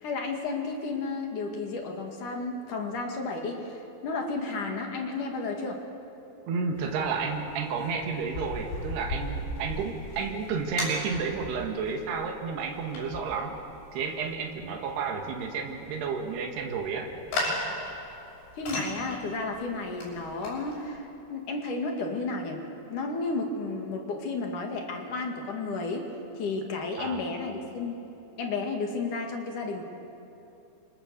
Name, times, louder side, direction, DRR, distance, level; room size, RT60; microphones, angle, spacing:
voice 1, 0.0-5.8 18.5-22.6 22.9-26.1 26.3-28.0 28.4-29.8, left 3 dB, 55° left, 2 dB, 3.3 m, -32 dB
voice 2, 6.5-13.6 13.9-17.1 27.0-27.2, right 5 dB, 75° right, 2 dB, 4.0 m, -31 dB
sound 1, 6.8-20.9, left 1 dB, 85° left, 8.7 m, -38 dB
28.0 x 26.0 x 7.0 m, 3.0 s
omnidirectional pair, 4.8 m